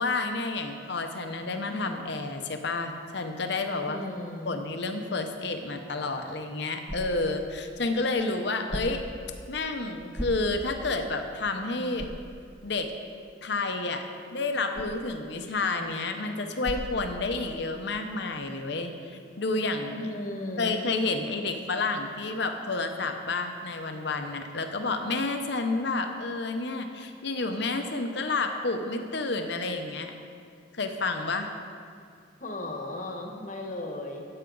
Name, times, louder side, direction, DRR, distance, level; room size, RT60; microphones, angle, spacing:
voice 1, 0.0-4.0 4.4-9.0 9.5-12.1 12.6-12.9 13.4-14.0 14.3-20.1 20.6-30.1 30.8-31.5, left 3 dB, 55° left, 6 dB, 0.8 m, -30 dB
voice 2, 3.8-4.6 20.0-20.8 32.4-34.3, left 1 dB, 40° left, 2 dB, 1.2 m, -36 dB
sound 1, 6.0-17.7, equal, 10° right, 0.8 m, -42 dB
13.0 x 8.9 x 3.9 m, 2.2 s
head